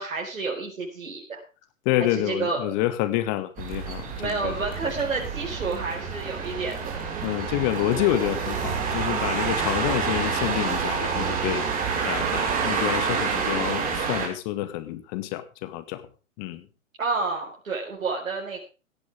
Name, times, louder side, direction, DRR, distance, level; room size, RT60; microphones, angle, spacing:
voice 1, 0.0-1.4 2.1-2.6 4.2-6.9 17.0-18.6, right 4 dB, 75° right, -3 dB, 4.8 m, -30 dB
voice 2, 1.9-4.6 7.2-11.7 12.0-16.0 16.4-16.6, left 14 dB, 35° left, 12 dB, 1.9 m, -28 dB
sound 1, 3.6-14.3, right 5 dB, 20° right, 5.1 m, -28 dB
17.5 x 12.0 x 3.6 m, 0.32 s
figure-of-eight pair, 125°, 40 cm